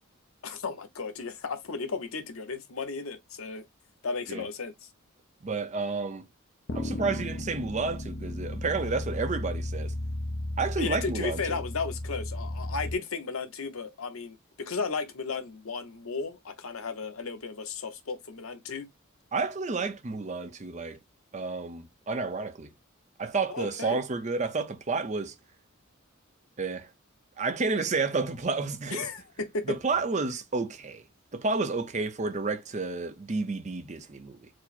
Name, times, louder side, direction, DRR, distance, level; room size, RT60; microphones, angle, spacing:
voice 1, 0.4-3.6 4.0-4.7 10.8-18.9 23.5-24.0 28.9-29.8, left 4 dB, 90° left, 0.8 m, -34 dB
voice 2, 5.4-6.3 6.7-9.9 10.6-11.6 19.3-21.0 21.3-22.7 23.2-25.3 26.6-26.9 27.4-29.1 29.7-31.0 31.3-34.5, right 4 dB, 35° right, 0.6 m, -30 dB
sound 1, 6.7-12.9, left 1 dB, 55° left, 0.6 m, -34 dB
4.7 x 2.0 x 4.1 m
head